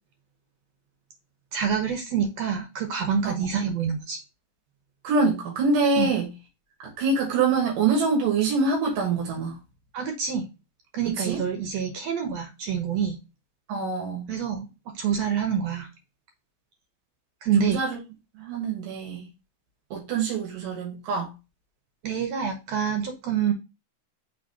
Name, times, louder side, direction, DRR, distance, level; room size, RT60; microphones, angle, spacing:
voice 1, 1.5-4.2 6.0-6.1 9.9-10.5 10.9-13.2 14.3-14.7 15.0-15.9 17.4-17.8 22.0-23.5, right 7 dB, 65° right, 2.0 m, -26 dB
voice 2, 5.0-6.3 6.8-9.6 11.1-11.4 13.7-14.3 17.6-18.0 18.4-19.3 19.9-21.3, right 4 dB, 85° right, 3.2 m, -25 dB
6.3 x 3.4 x 4.6 m
omnidirectional pair, 3.7 m